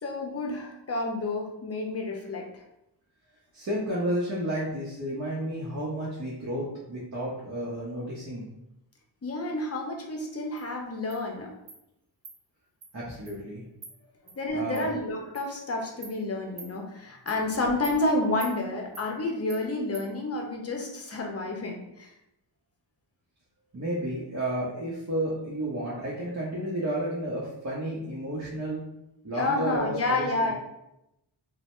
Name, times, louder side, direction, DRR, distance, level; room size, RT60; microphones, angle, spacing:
voice 1, 0.0-2.6 9.2-11.5 14.4-22.1 29.3-30.5, left 2 dB, 30° left, 1 dB, 0.7 m, -30 dB
voice 2, 3.5-8.4 12.9-13.6 14.5-14.9 23.7-28.8 29.2-30.5, right 1 dB, 35° right, -7 dB, 0.8 m, -32 dB
Insect, 10.6-10.7 11.1-11.2 11.7-11.8 12.2-12.4 12.8-12.9 13.3-13.4 13.8-13.9 14.3-14.4 14.7-14.8 15.3-15.5 16.0-16.1 16.6-16.7 17.3-17.4 17.8-18.0 18.4-18.5 18.9-19.1 19.5-19.6 19.9-20.1, right 4 dB, 65° right, 0.9 m, -44 dB
2.7 x 2.1 x 3.1 m, 0.86 s
cardioid pair, 55°, 45 cm